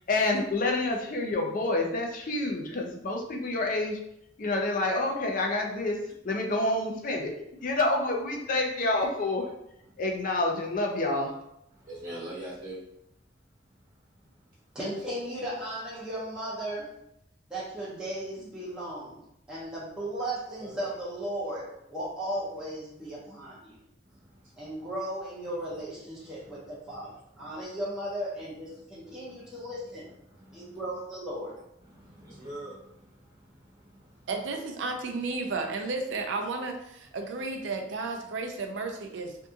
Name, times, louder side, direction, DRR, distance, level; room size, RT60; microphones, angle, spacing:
voice 1, 0.1-4.0 4.4-6.0 6.2-7.3 7.6-9.4 10.0-11.3, left 2 dB, 45° left, 1 dB, 0.5 m, -28 dB
voice 2, 11.7-12.8 20.6-20.8 24.0-24.9 26.2-27.6 29.0-29.5 30.3-30.8 31.8-34.3, right 1 dB, 50° right, -10 dB, 1.1 m, -46 dB
voice 3, 14.7-16.9 17.5-19.2 19.5-23.7 24.6-27.1 27.4-30.0 30.5-31.6, right 1 dB, 5° right, -10 dB, 0.6 m, -36 dB
voice 4, 34.3-39.4, right 3 dB, 80° right, 4 dB, 0.4 m, -33 dB
2.6 x 2.6 x 2.3 m, 0.79 s
head